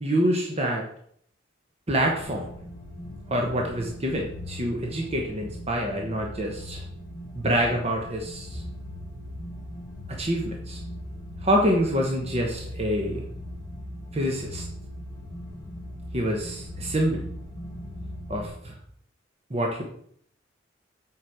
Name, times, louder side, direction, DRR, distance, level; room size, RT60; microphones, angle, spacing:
voice 1, 0.0-0.8 1.9-2.5 3.3-6.8 7.3-8.6 10.2-10.8 11.4-13.2 14.1-14.6 16.1-17.2 18.3-18.7 19.5-19.8, equal, 35° right, 0 dB, 1.0 m, -26 dB
sound 1, 2.2-18.5, left 1 dB, 20° left, 1.8 m, -39 dB
7.8 x 5.2 x 4.7 m, 0.64 s
head